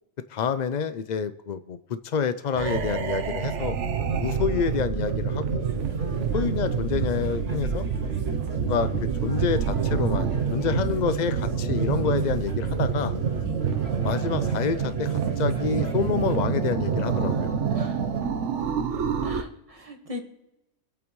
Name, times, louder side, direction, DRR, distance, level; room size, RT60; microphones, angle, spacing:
voice 1, 0.3-3.8 4.2-5.7 6.3-7.9 8.6-8.9 9.2-13.1 14.0-17.5, left 6 dB, 60° left, 12 dB, 0.4 m, -28 dB
sound 1, 2.5-19.4, right 6 dB, 65° right, 1.1 m, -27 dB
sound 2, 5.6-16.3, right 1 dB, 50° right, 2.3 m, -42 dB
voice 2, 6.0-6.7 13.4-13.6 17.7-18.1 19.2-20.2, equal, 25° right, 1 dB, 1.8 m, -39 dB
25.0 x 8.7 x 3.1 m, 0.93 s
omnidirectional pair, 1.3 m